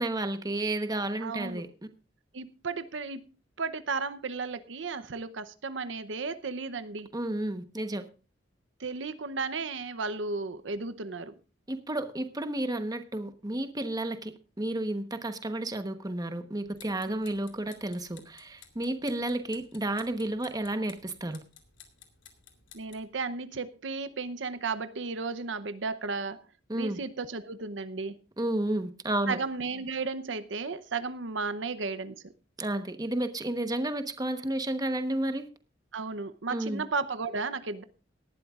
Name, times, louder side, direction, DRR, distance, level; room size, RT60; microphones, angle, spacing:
voice 1, 0.0-1.7 7.1-8.0 11.7-21.4 26.7-27.0 28.4-29.4 32.6-35.5 36.5-36.8, right 1 dB, 20° right, 1.1 m, -31 dB
voice 2, 1.2-1.6 2.3-3.3 3.6-7.1 8.8-11.3 17.1-17.3 22.7-26.4 26.7-28.2 29.3-32.2 35.9-37.8, right 4 dB, 75° right, 0.8 m, -34 dB
sound 1, 16.6-23.1, left 8 dB, 85° left, 2.5 m, -56 dB
18.5 x 12.0 x 2.4 m
head